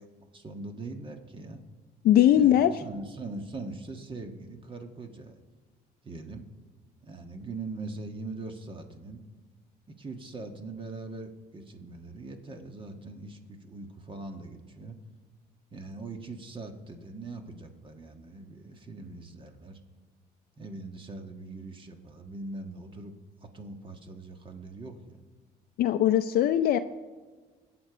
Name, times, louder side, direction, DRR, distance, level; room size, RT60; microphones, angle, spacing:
voice 1, 0.0-1.6 2.3-5.4 6.0-6.4 7.0-9.2 9.9-15.0 15.7-19.8 20.6-23.1 23.4-25.2, right 3 dB, 30° right, 5 dB, 1.5 m, -41 dB
voice 2, 2.0-2.7 25.8-26.8, left 11 dB, 65° left, 8 dB, 0.5 m, -20 dB
21.5 x 8.0 x 4.9 m, 1.4 s
cardioid pair, 110°, 17 cm